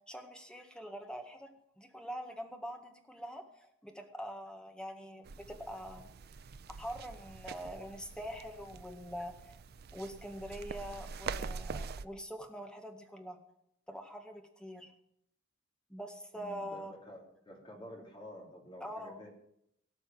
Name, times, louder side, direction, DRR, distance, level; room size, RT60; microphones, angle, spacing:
voice 1, 0.1-1.5 1.8-6.1 6.8-9.6 9.9-13.4 13.9-14.9 15.9-16.9 18.8-19.2, equal, 5° left, 4 dB, 1.8 m, -44 dB
sound 1, 5.3-12.1, right 5 dB, 55° right, 0.5 m, -44 dB
voice 2, 16.3-19.3, equal, 25° left, 0 dB, 3.7 m, -50 dB
18.0 x 6.3 x 9.3 m, 0.74 s
head